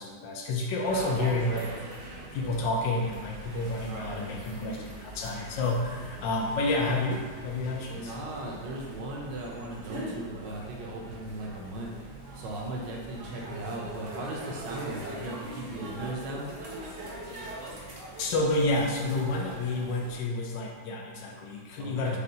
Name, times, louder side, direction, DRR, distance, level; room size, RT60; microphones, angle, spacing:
voice 1, 0.0-1.7 2.3-8.2 17.7-22.2, left 2 dB, 80° left, 0 dB, 1.3 m, -30 dB
sound 1, 0.8-20.2, right 1 dB, 55° right, 0.9 m, -42 dB
voice 2, 3.9-4.4 7.9-16.5 21.8-22.2, right 1 dB, 75° right, -2 dB, 1.4 m, -37 dB
6.5 x 2.2 x 2.8 m, 1.4 s
omnidirectional pair, 2.0 m